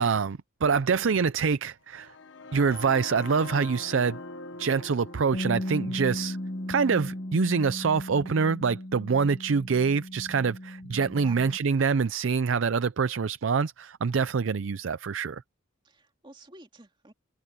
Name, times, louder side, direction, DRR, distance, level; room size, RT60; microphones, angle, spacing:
voice 1, 0.0-2.1 2.5-4.2 4.6-6.4 6.7-15.4, right 5 dB, 80° right, 0.5 m, -25 dB
sound 1, 1.9-9.8, left 3 dB, 70° left, 1.3 m, -44 dB
Bass guitar, 5.3-11.6, left 1 dB, 45° left, 2.4 m, -36 dB
voice 2, 15.8-17.1, right 2 dB, 25° right, 2.4 m, -50 dB
head